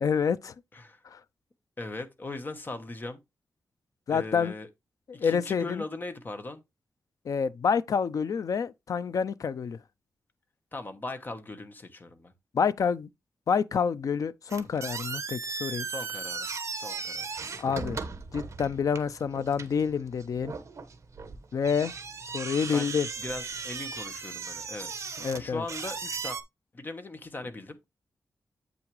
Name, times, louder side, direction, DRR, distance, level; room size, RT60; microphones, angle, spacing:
voice 1, 0.0-0.5 1.1-1.2 4.1-4.5 5.2-5.8 7.3-9.8 12.5-13.1 13.5-15.9 17.6-18.0 18.3-20.5 21.5-21.9 22.3-23.1 25.2-25.6, left 6 dB, 65° left, 0.5 m, -28 dB
voice 2, 0.7-1.0 1.8-3.2 4.1-4.7 5.2-6.6 10.7-12.3 15.8-16.5 16.7-17.3 22.7-22.9 23.2-24.9 25.2-26.4 26.7-27.8, left 2 dB, 30° left, 1.2 m, -39 dB
sound 1, 14.5-26.4, right 5 dB, 50° right, 1.2 m, -37 dB
8.1 x 6.0 x 3.2 m
wide cardioid pair, 135°, 6 cm